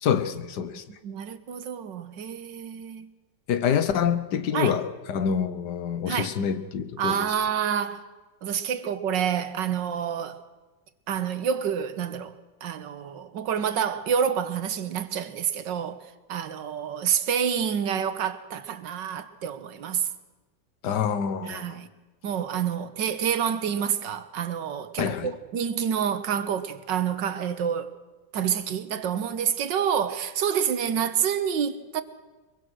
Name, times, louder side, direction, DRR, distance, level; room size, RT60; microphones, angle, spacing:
voice 1, 0.0-0.8 3.5-7.3 20.8-21.8 25.0-25.4, left 7 dB, 70° left, 1.7 m, -26 dB
voice 2, 1.0-3.1 4.5-4.8 6.1-6.3 7.0-8.0 8.4-10.4 11.1-12.3 12.6-16.0 16.3-20.1 21.4-21.9 22.2-27.9 28.3-32.0, right 8 dB, 90° right, 1.8 m, -28 dB
24.0 x 22.5 x 6.3 m
omnidirectional pair, 1.9 m